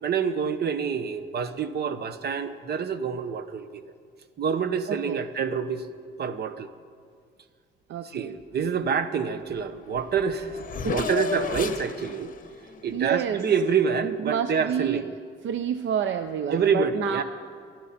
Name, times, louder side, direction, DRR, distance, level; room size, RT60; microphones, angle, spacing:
voice 1, 0.0-3.8 4.4-5.9 6.2-6.7 8.0-12.3 12.8-15.1 16.5-17.2, right 6 dB, 55° right, 11 dB, 1.1 m, -27 dB
voice 2, 4.9-5.2 7.9-8.3 10.8-11.0 12.9-13.4 14.0-15.0 15.4-17.2, right 9 dB, 70° right, 9 dB, 0.6 m, -29 dB
Race car auto racing / Accelerating revving vroom, 9.6-9.7 9.9-13.9, left 6 dB, 45° left, 1.0 m, -34 dB
27.5 x 11.5 x 4.3 m, 2.1 s
cardioid pair, 90°, 20 cm